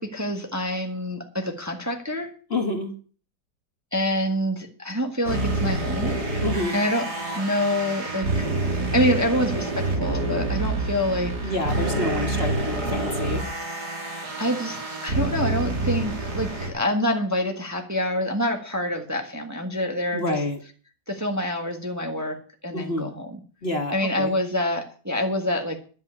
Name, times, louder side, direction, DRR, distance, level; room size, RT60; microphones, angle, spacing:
voice 1, 0.0-2.3 3.9-6.2 6.7-7.0 7.3-8.5 8.9-11.5 14.1-20.4 21.1-23.4 23.9-25.8, left 1 dB, 10° right, 3 dB, 1.4 m, -26 dB
voice 2, 2.5-2.9 6.4-6.7 11.4-13.4 20.1-20.6 22.7-23.1 23.6-24.3, left 2 dB, 35° left, 4 dB, 1.6 m, -28 dB
sound 1, 5.3-16.7, right 2 dB, 65° right, 3.5 m, -27 dB
11.0 x 7.6 x 8.4 m, 0.40 s
omnidirectional pair, 1.9 m